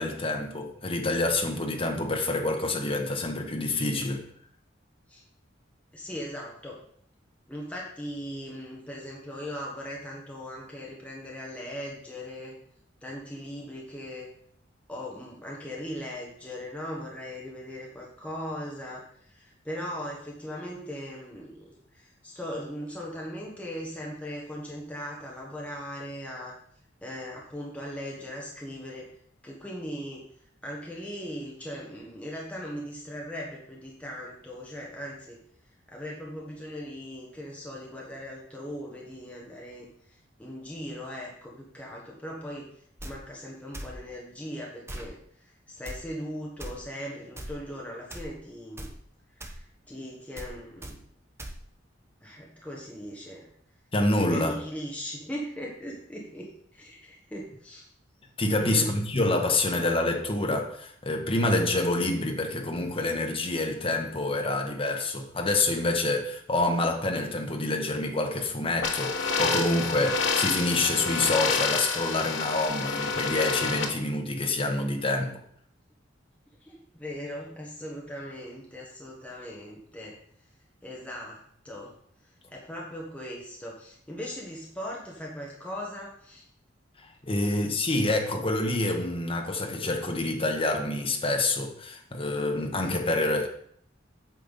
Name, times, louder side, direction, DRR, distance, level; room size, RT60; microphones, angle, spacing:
voice 1, 0.0-4.2 53.9-54.6 58.4-75.4 87.0-93.5, left 2 dB, 30° left, 1.2 m, -27 dB
voice 2, 5.9-6.8 7.5-12.5 13.0-14.3 14.9-26.5 27.0-29.1 29.4-30.2 30.6-35.4 35.9-42.7 43.0-48.9 49.3-51.0 52.2-53.5 54.3-57.9 58.6-58.9 76.6-80.2 80.8-81.4 81.6-81.9 82.5-86.4, equal, 5° left, 1.3 m, -39 dB
sound 1, 43.0-43.1 43.7-44.0 44.9-45.1 45.8-46.0 46.6-46.7 47.4-47.6 48.1-48.3 48.8-48.9 49.4-49.6 50.4-50.5 50.8-50.9 51.4-51.6, right 1 dB, 15° right, 0.9 m, -39 dB
sound 2, 68.8-73.8, left 5 dB, 80° left, 1.2 m, -28 dB
8.7 x 5.5 x 4.1 m
head